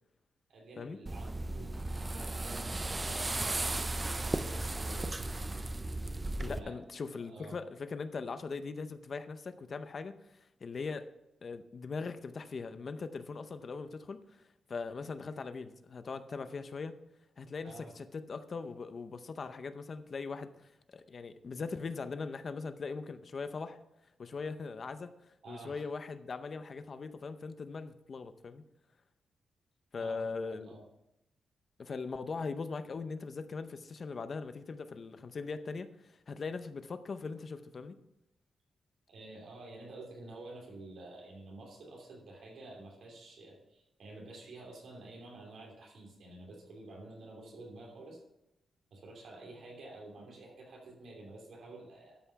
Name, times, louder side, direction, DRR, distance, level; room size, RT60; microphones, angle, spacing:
voice 1, 0.5-5.2 6.4-6.8 7.3-7.6 17.6-17.9 25.4-25.8 30.0-30.2 30.4-30.8 39.1-48.2 48.9-52.2, right 2 dB, 65° right, -1 dB, 2.9 m, -50 dB
sound 1, 1.1-6.6, right 2 dB, 15° right, 0.4 m, -35 dB
voice 2, 6.4-11.1 11.4-14.4 14.7-16.9 17.4-23.8 24.2-28.6 29.9-30.8 31.8-38.0, left 4 dB, 35° left, 10 dB, 0.6 m, -40 dB
12.5 x 5.6 x 5.7 m, 0.88 s
wide cardioid pair, 180°, 0 cm